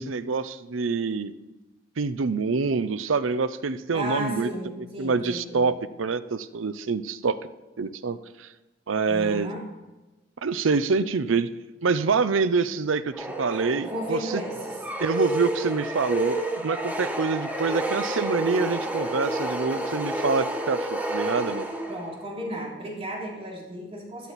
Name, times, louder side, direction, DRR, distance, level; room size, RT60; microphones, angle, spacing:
voice 1, 0.0-1.3 2.0-4.5 5.0-7.4 7.8-8.5 8.9-9.5 10.4-11.5 11.8-14.4 15.0-21.7, right 4 dB, 90° right, 14 dB, 0.6 m, -26 dB
voice 2, 3.9-5.6 9.1-9.7 13.8-14.8 21.9-24.3, equal, 30° right, -3 dB, 3.1 m, -34 dB
sound 1, 13.1-22.2, right 1 dB, 10° right, 1.1 m, -30 dB
12.5 x 12.5 x 4.2 m, 1.1 s
head